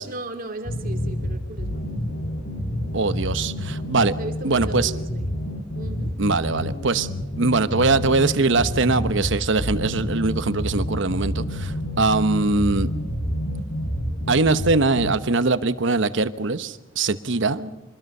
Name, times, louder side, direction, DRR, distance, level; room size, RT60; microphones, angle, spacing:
voice 1, 0.0-1.9 4.2-5.3 5.7-6.1 17.5-17.7, right 1 dB, 45° right, 4 dB, 2.7 m, -36 dB
sound 1, 0.6-15.1, equal, 60° left, 4.6 m, -28 dB
voice 2, 2.9-4.1 4.4-4.9 6.2-7.1 7.4-12.9 14.3-17.6, right 3 dB, 70° right, 13 dB, 1.1 m, -22 dB
26.0 x 21.0 x 5.5 m, 0.97 s
head